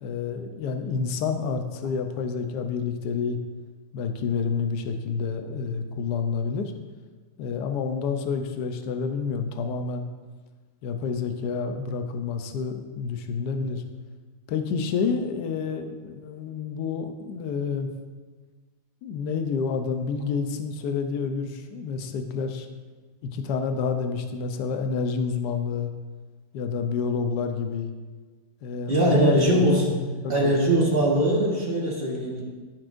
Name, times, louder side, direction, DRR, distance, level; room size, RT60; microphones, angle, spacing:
voice 1, 0.0-3.4 3.9-6.7 7.4-10.1 10.8-13.8 14.5-17.9 19.0-22.7 23.3-25.9 26.5-27.9 28.6-29.6 30.2-30.6, left 5 dB, 65° left, 6 dB, 1.2 m, -28 dB
voice 2, 28.9-30.0 30.3-32.4, right 1 dB, 30° right, -2 dB, 1.5 m, -21 dB
13.5 x 6.1 x 2.5 m, 1.4 s
omnidirectional pair, 2.1 m